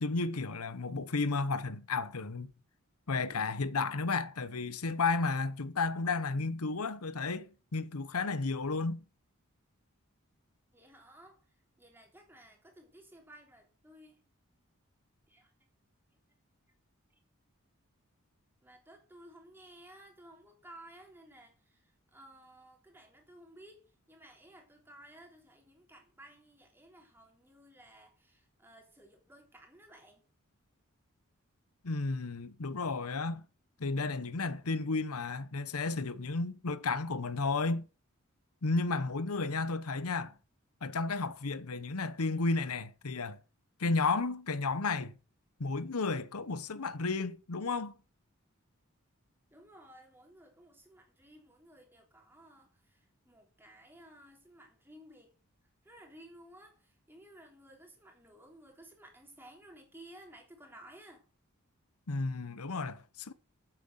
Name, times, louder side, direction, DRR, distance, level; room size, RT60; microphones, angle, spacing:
voice 1, 0.0-2.5 3.1-9.0 31.8-33.4 33.8-37.9 38.6-40.3 40.8-43.4 43.8-45.1 45.6-47.9 62.1-63.3, left 3 dB, 85° left, 0.9 m, -33 dB
voice 2, 10.7-14.2 15.3-15.5 18.6-30.2 49.5-55.3 55.8-61.3, right 1 dB, 10° right, 3.3 m, -56 dB
9.2 x 7.8 x 7.9 m
head